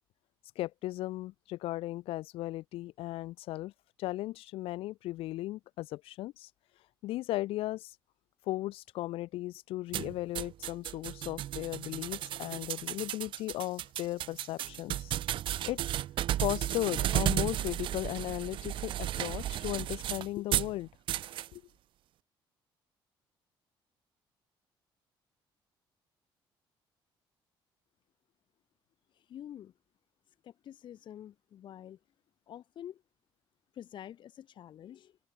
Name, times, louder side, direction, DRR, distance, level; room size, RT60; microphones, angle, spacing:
voice 1, 0.5-3.7 4.0-6.5 7.0-8.0 8.5-15.1 15.6-15.8 16.4-20.9 21.5-21.6, left 17 dB, 85° left, 1.2 m, -36 dB
sound 1, 9.9-20.7 21.1-21.5, right 13 dB, 65° right, 0.8 m, -34 dB
voice 2, 29.1-29.7 30.4-32.0 32.5-33.0 33.7-35.2, left 10 dB, 60° left, 2.8 m, -47 dB
open air
cardioid pair, 115°, 9 cm